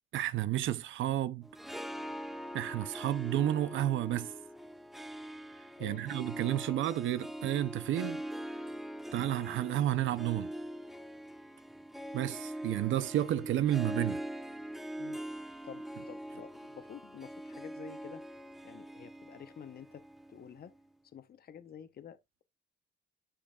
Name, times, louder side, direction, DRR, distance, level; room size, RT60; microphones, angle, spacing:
voice 1, 0.1-1.5 2.5-4.3 5.8-8.2 9.1-10.5 12.1-14.2, right 13 dB, 75° right, 0.6 m, -31 dB
Harp, 1.4-20.8, equal, ahead, 0.6 m, -43 dB
voice 2, 15.6-18.2 18.6-20.0 20.3-20.7 21.1-22.4, left 8 dB, 50° left, 0.9 m, -49 dB
10.0 x 6.1 x 2.4 m
cardioid pair, 90°, 20 cm